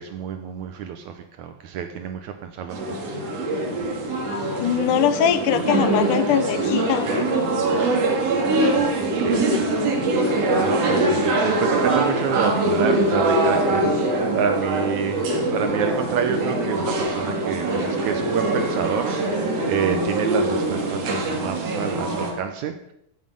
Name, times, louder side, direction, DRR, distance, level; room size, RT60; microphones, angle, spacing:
voice 1, 0.0-3.2 8.6-9.7 10.6-15.3 15.5-22.9, right 7 dB, 75° right, 7 dB, 2.1 m, -28 dB
sound 1, 2.7-22.3, right 2 dB, 55° right, 2.8 m, -23 dB
voice 2, 4.2-7.2 9.5-9.6, left 10 dB, 80° left, 12 dB, 2.3 m, -22 dB
15.0 x 7.6 x 5.4 m, 0.72 s
omnidirectional pair, 3.7 m